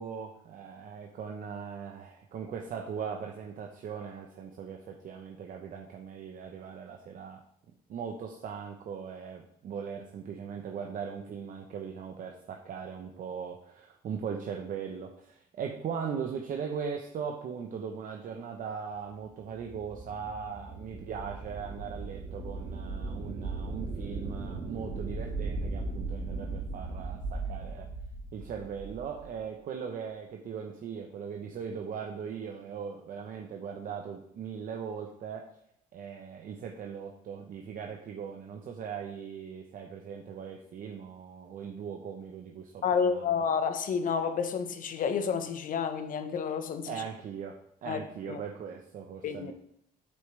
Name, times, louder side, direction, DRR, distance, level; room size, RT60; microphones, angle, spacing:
voice 1, 0.0-7.4 7.9-27.9 28.3-35.5 35.9-43.3 46.9-49.5, right 7 dB, 55° right, 0.9 m, -39 dB
sound 1, 19.3-29.4, right 3 dB, 80° right, 2.5 m, -38 dB
voice 2, 42.8-47.0 47.8-48.0 48.3-48.4 49.2-49.5, left 6 dB, 50° left, 1.1 m, -30 dB
8.8 x 8.1 x 3.4 m
cardioid pair, 110°, 17 cm